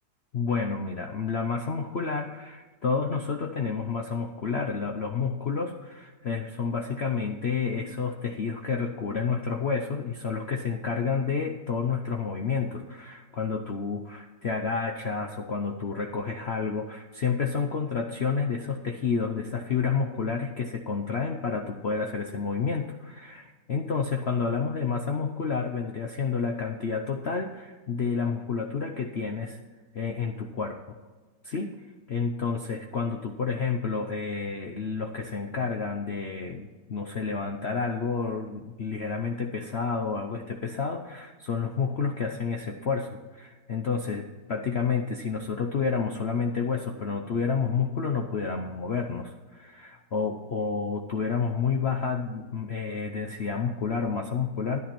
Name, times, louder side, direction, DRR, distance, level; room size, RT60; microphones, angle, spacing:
voice 1, 0.3-29.6 29.9-30.9 31.4-31.7 32.1-54.8, left 5 dB, 55° left, 4 dB, 0.7 m, -30 dB
11.0 x 10.5 x 4.3 m, 1.4 s
omnidirectional pair, 1.9 m